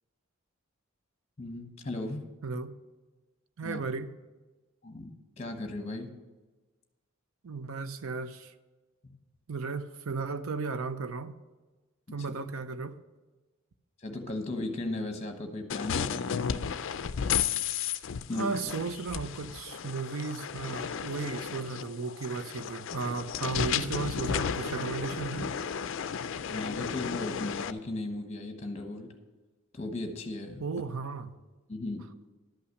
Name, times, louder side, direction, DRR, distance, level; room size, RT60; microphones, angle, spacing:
voice 1, 1.4-2.3 3.6-3.8 4.8-6.2 9.0-9.2 12.1-12.2 14.0-16.6 18.3-18.6 26.5-29.1 29.7-30.6 31.7-32.0, left 2 dB, 30° left, 6 dB, 1.1 m, -36 dB
voice 2, 2.4-2.7 3.6-4.1 7.4-8.5 9.5-11.3 12.1-13.0 18.3-25.5 30.6-31.3, right 4 dB, 70° right, 12 dB, 0.6 m, -35 dB
sound 1, 15.7-27.7, left 7 dB, 60° left, 0.4 m, -33 dB
11.5 x 5.7 x 6.5 m, 1.2 s
head